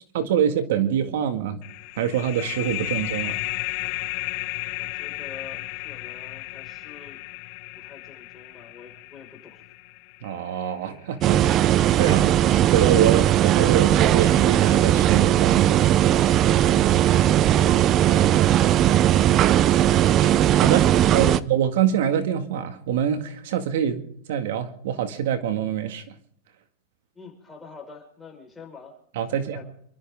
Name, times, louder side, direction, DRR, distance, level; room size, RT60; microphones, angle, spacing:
voice 1, 0.1-1.6 2.0-3.4 10.2-11.7 12.0-12.3 12.7-15.8 20.6-24.0 24.3-26.0 29.2-29.6, right 9 dB, 70° right, 7 dB, 1.9 m, -25 dB
sound 1, 1.6-10.9, left 22 dB, 45° left, 0.7 m, -34 dB
voice 2, 4.8-7.2 7.7-9.6 12.2-12.6 16.9-19.0 21.1-21.4 27.1-29.0 29.3-29.6, left 5 dB, 10° left, 1 dB, 5.0 m, -46 dB
sound 2, 11.2-21.4, right 12 dB, 30° right, 0.6 m, -18 dB
28.5 x 13.0 x 3.6 m, 0.69 s
supercardioid pair, 150°, 0 cm